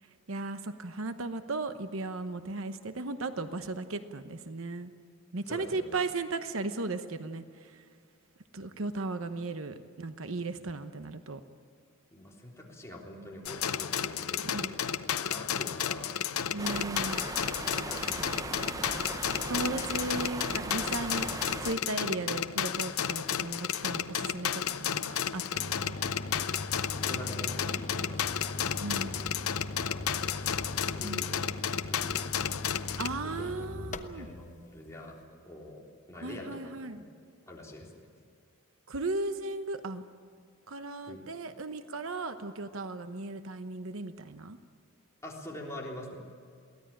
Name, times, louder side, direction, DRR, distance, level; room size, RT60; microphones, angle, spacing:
voice 1, 0.3-4.9 5.3-7.7 8.5-11.4 14.4-14.7 16.5-17.3 19.5-21.3 21.6-25.9 28.8-29.2 31.0-31.2 32.7-34.3 36.2-37.0 38.9-40.0 40.7-44.6, right 2 dB, 70° right, 9 dB, 1.0 m, -36 dB
voice 2, 5.5-5.8 12.1-14.9 15.2-16.9 17.5-18.9 26.9-28.5 28.9-29.3 29.7-31.4 31.8-32.8 33.2-33.5 33.8-37.0 37.5-38.0 41.0-41.2 45.2-46.2, left 1 dB, 15° left, -2 dB, 3.6 m, -46 dB
sound 1, 13.5-33.1, left 9 dB, 85° left, 0.7 m, -33 dB
sound 2, 16.6-21.7, right 2 dB, 15° right, 0.7 m, -38 dB
sound 3, 25.5-34.5, left 1 dB, 35° left, 0.9 m, -40 dB
23.0 x 17.0 x 8.8 m, 2.2 s
head